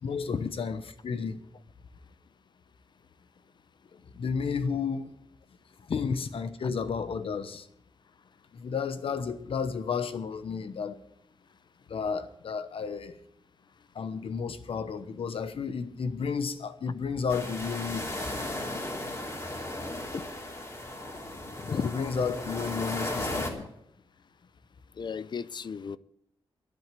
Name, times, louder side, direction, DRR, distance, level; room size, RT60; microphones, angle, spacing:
voice 1, 0.0-1.4 3.9-5.1 5.9-7.7 8.5-11.0 11.9-13.1 13.9-18.1 21.8-23.7, left 5 dB, 75° left, 1.1 m, -32 dB
sound 1, 17.3-23.5, left 1 dB, 35° left, 3.1 m, -35 dB
voice 2, 21.6-21.9 25.0-26.0, left 6 dB, 50° left, 0.5 m, -33 dB
11.5 x 11.0 x 7.6 m
wide cardioid pair, 105°, 10 cm